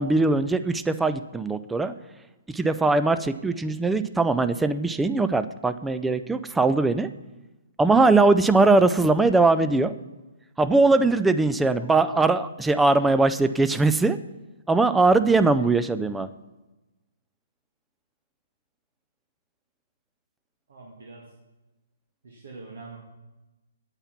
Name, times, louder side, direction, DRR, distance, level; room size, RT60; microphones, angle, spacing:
voice 1, 0.0-1.9 2.5-7.1 7.8-9.9 10.6-14.2 14.7-16.3, right 3 dB, 5° right, 12 dB, 0.4 m, -21 dB
voice 2, 20.7-21.2 22.2-23.0, right 3 dB, 65° right, -2 dB, 2.0 m, -44 dB
8.9 x 8.5 x 5.8 m, 1.1 s
figure-of-eight pair, 130°, 0 cm